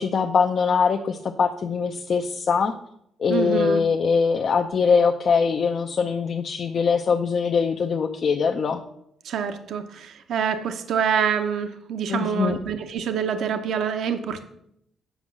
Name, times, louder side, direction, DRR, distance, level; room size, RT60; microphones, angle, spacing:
voice 1, 0.0-2.8 3.2-8.8 12.1-12.6, left 5 dB, 60° left, 4 dB, 0.6 m, -22 dB
voice 2, 3.3-3.8 9.2-14.4, right 7 dB, 75° right, 7 dB, 0.7 m, -26 dB
8.0 x 5.3 x 6.0 m, 0.74 s
supercardioid pair, 65°, 0 cm